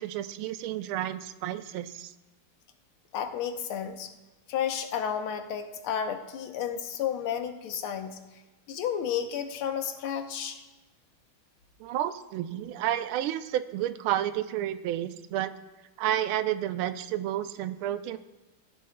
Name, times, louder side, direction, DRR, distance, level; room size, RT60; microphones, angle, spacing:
voice 1, 0.0-2.1 11.8-15.5 16.0-18.2, right 12 dB, 85° right, 12 dB, 1.5 m, -31 dB
voice 2, 3.1-4.1 4.5-8.2 8.7-10.6, left 8 dB, 90° left, 7 dB, 1.8 m, -32 dB
17.0 x 11.0 x 2.2 m, 1.1 s
omnidirectional pair, 2.3 m